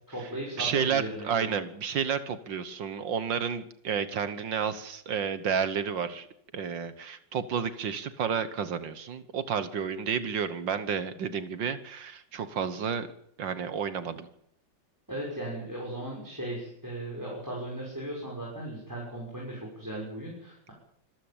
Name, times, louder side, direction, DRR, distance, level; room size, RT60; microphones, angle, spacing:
voice 1, 0.1-1.5 15.1-20.7, right 1 dB, 10° right, -3 dB, 6.2 m, -37 dB
voice 2, 0.6-6.3 6.5-13.1 13.4-14.3, right 7 dB, 75° right, 12 dB, 1.9 m, -31 dB
26.0 x 14.5 x 8.8 m, 0.72 s
omnidirectional pair, 2.1 m